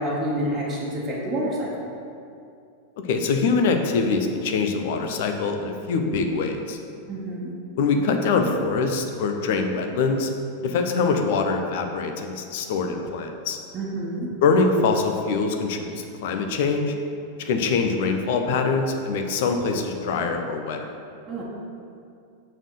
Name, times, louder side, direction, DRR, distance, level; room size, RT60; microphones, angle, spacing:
voice 1, 0.0-1.7 7.1-7.5 13.7-14.3 21.3-21.4, right 1 dB, 25° right, -5 dB, 1.5 m, -28 dB
voice 2, 3.1-6.8 7.8-10.3 10.6-13.6 14.4-16.9 17.4-20.9, left 4 dB, 50° left, 5 dB, 0.8 m, -24 dB
6.3 x 4.3 x 6.5 m, 2.5 s
figure-of-eight pair, 90°, 0 cm